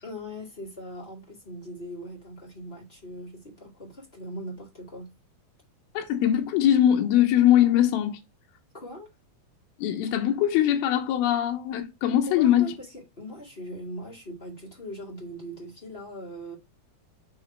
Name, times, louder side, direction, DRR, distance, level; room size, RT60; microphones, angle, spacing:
voice 1, 0.0-5.1 8.7-9.1 12.3-16.5, equal, 25° left, 1.2 m, -40 dB
voice 2, 5.9-8.2 9.8-12.7, left 11 dB, 85° left, 2.8 m, -22 dB
6.3 x 3.0 x 5.7 m
omnidirectional pair, 4.3 m